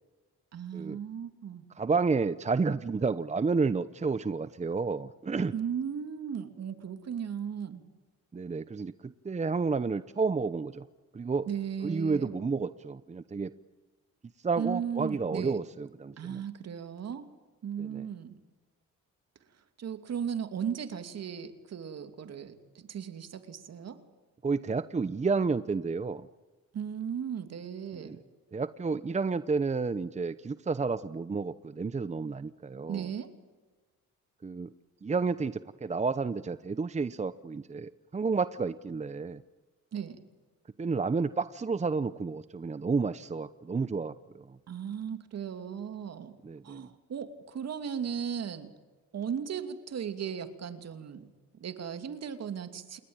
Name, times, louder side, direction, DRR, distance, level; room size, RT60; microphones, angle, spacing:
voice 1, 0.5-1.7 5.5-7.8 11.5-12.3 14.6-15.6 16.2-17.3 17.6-18.4 19.8-24.0 26.7-28.2 32.9-33.3 39.9-40.2 44.7-46.4 46.6-48.7 49.1-51.3 51.6-53.0, right 8 dB, 55° right, 9 dB, 2.8 m, -36 dB
voice 2, 1.8-5.5 8.3-10.9 11.1-11.5 11.8-13.5 14.4-16.4 17.8-18.0 24.4-26.3 27.9-28.2 28.5-33.1 34.4-34.7 35.0-39.4 40.8-44.6 46.4-46.9, right 4 dB, 25° right, 14 dB, 0.9 m, -31 dB
28.5 x 21.0 x 9.0 m, 1.3 s
cardioid pair, 90°, 30 cm